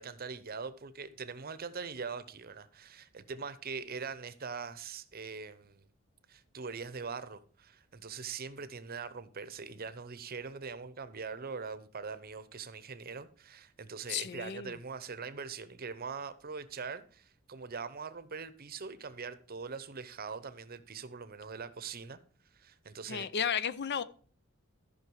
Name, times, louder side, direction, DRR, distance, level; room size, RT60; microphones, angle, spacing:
voice 1, 0.0-5.8 6.3-22.2 22.5-23.3, right 5 dB, 45° right, 0.8 m, -42 dB
voice 2, 14.1-14.8 23.1-24.0, left 7 dB, 55° left, 0.5 m, -33 dB
13.5 x 5.7 x 4.7 m
head